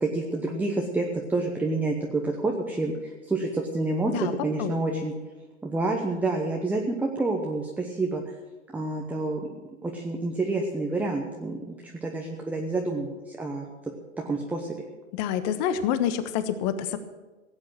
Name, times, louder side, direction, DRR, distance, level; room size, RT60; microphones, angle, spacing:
voice 1, 0.0-4.1 4.4-5.1 5.6-8.2 8.7-9.5 9.8-13.7 14.2-14.8, right 2 dB, 5° right, 1 dB, 0.9 m, -28 dB
voice 2, 4.6-5.0 15.1-17.0, left 9 dB, 35° left, 11 dB, 1.2 m, -27 dB
16.5 x 8.7 x 7.6 m, 1.2 s
hypercardioid pair, 125°, 40 cm